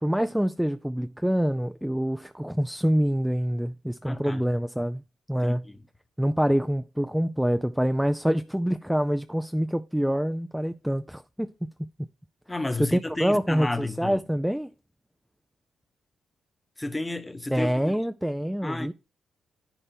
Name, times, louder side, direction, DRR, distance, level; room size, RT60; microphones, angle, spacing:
voice 1, 0.0-5.0 5.3-5.6 6.2-11.9 12.8-14.7 17.5-18.9, equal, 5° right, 0.3 m, -26 dB
voice 2, 4.0-4.5 5.3-5.8 12.5-14.2 16.8-17.9 18.6-18.9, left 2 dB, 15° left, 0.9 m, -32 dB
10.0 x 4.3 x 4.4 m
cardioid pair, 80°, 0 cm